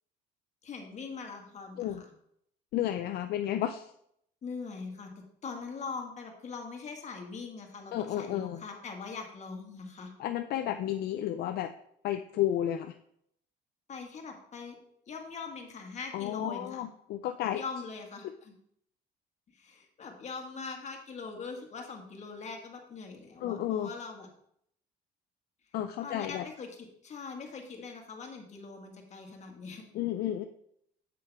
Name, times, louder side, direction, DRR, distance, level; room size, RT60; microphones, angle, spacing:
voice 1, 0.6-2.1 4.4-10.1 13.9-14.8 15.1-16.8 17.6-18.5 19.5-24.3 26.0-29.8, left 4 dB, 45° left, 3 dB, 1.8 m, -42 dB
voice 2, 2.7-3.9 7.9-8.6 10.2-11.7 12.0-12.9 16.1-17.6 23.4-23.9 25.7-26.5 29.9-30.4, left 11 dB, 70° left, 8 dB, 0.5 m, -32 dB
7.9 x 7.7 x 3.5 m, 0.72 s
cardioid pair, 110°, 17 cm